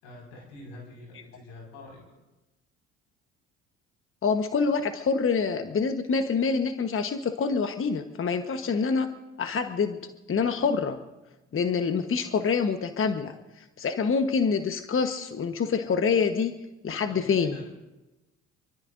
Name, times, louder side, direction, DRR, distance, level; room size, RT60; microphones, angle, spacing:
voice 1, 0.0-2.0 17.1-17.7, left 2 dB, 85° left, 0 dB, 5.4 m, -45 dB
voice 2, 4.2-9.1 9.4-10.0 10.3-11.0 11.5-16.5 16.8-17.6, left 5 dB, 35° left, 7 dB, 1.2 m, -26 dB
24.0 x 22.5 x 2.6 m, 1.0 s
hypercardioid pair, 60°, 36 cm